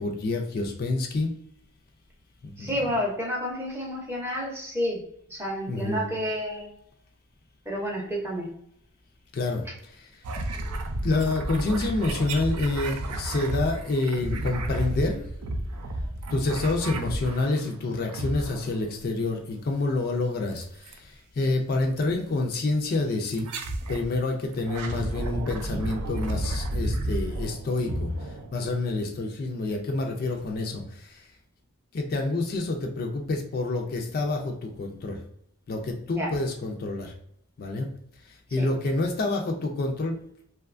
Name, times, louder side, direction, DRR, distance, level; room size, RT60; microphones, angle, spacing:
voice 1, 0.0-1.3 2.4-3.0 5.7-6.1 9.3-10.2 11.0-15.2 16.3-23.5 23.9-31.3 31.9-35.2 35.7-37.1 37.6-37.9 38.2-40.2, left 2 dB, 40° left, 2 dB, 0.3 m, -28 dB
voice 2, 2.6-5.0 5.3-6.7 7.7-8.5 36.1-36.3 38.6-38.7, equal, 10° right, -2 dB, 0.6 m, -30 dB
sound 1, 10.2-17.7 18.1-18.9 20.6-21.0 22.0-22.1 23.3-24.1 24.5-28.9, right 1 dB, 80° right, 0.4 m, -32 dB
2.7 x 2.2 x 2.4 m, 0.71 s
head